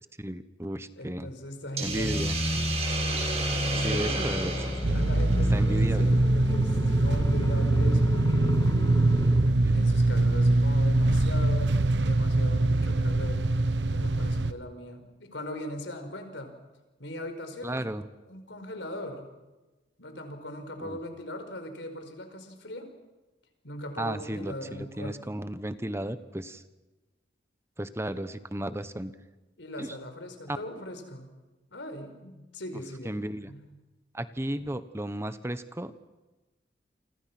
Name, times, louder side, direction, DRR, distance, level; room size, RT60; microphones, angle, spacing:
voice 1, 0.2-1.3 1.8-2.4 3.8-4.5 4.9-5.1 5.5-6.2 9.6-9.8 17.6-18.1 20.8-21.0 24.0-26.6 27.8-29.1 29.8-30.0 30.5-30.6 33.0-33.5 34.1-35.9, right 1 dB, 15° right, 12 dB, 1.0 m, -34 dB
voice 2, 1.0-2.3 3.7-4.5 4.8-8.5 9.7-13.4 13.9-16.5 17.0-17.9 18.3-19.3 20.0-22.9 23.6-25.4 29.6-31.3 31.7-33.1 33.4-33.6, left 1 dB, 90° left, 7 dB, 5.0 m, -39 dB
Hiss, 1.8-6.0, right 3 dB, 35° right, 6.3 m, -33 dB
sound 1, 1.9-9.6, left 1 dB, 20° left, 0.7 m, -32 dB
sound 2, 4.8-14.5, right 2 dB, 75° right, 1.0 m, -23 dB
28.5 x 25.5 x 6.1 m, 1.1 s
head